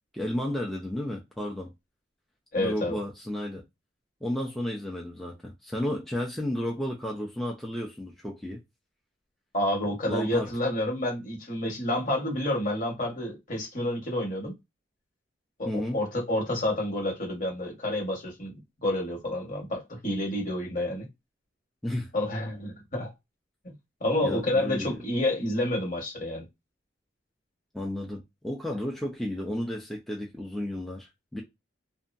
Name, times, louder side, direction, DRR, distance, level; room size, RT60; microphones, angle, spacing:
voice 1, 0.1-1.7 2.6-3.6 4.2-8.6 10.1-10.5 15.6-16.0 21.8-22.1 24.2-25.0 27.7-31.4, left 1 dB, ahead, 0.5 m, -32 dB
voice 2, 2.5-3.0 9.5-14.5 15.6-18.5 18.8-21.1 22.1-23.1 23.6-23.7 24.0-26.4, left 1 dB, 45° left, 1.4 m, -29 dB
2.7 x 2.2 x 2.6 m
head